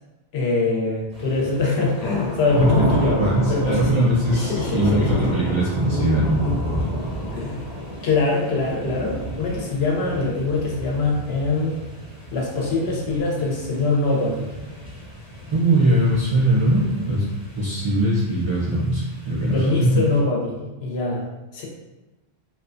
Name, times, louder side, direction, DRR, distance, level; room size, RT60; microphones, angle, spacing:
voice 1, 0.3-3.2 3.5-5.4 7.3-7.6 8.0-11.8 12.3-14.5 19.5-21.2 21.5-21.6, left 3 dB, 90° left, -3 dB, 0.9 m, -23 dB
sound 1, 1.1-20.2, left 1 dB, 25° left, 0.8 m, -31 dB
voice 2, 2.5-6.4 15.5-17.2 17.6-20.0, right 1 dB, 40° right, -6 dB, 0.4 m, -21 dB
2.7 x 2.1 x 2.5 m, 1.1 s
omnidirectional pair, 1.0 m